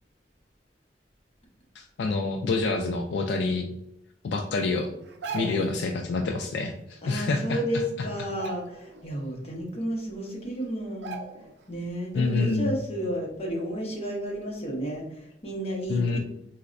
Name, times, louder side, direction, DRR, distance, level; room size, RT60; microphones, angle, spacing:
voice 1, 1.8-3.7 4.2-4.9 5.3-7.6 12.1-12.7 15.9-16.2, left 3 dB, 70° left, 4 dB, 0.3 m, -27 dB
sound 1, 5.0-5.8 7.2-7.3 7.6-7.9 8.3-9.1 9.5-9.6 10.4-10.5 11.0-11.6 12.0-12.2, right 5 dB, 70° right, 0.4 m, -38 dB
voice 2, 7.0-11.2 11.7-16.2, equal, 35° left, -1 dB, 0.8 m, -32 dB
4.1 x 2.1 x 2.4 m, 0.78 s
head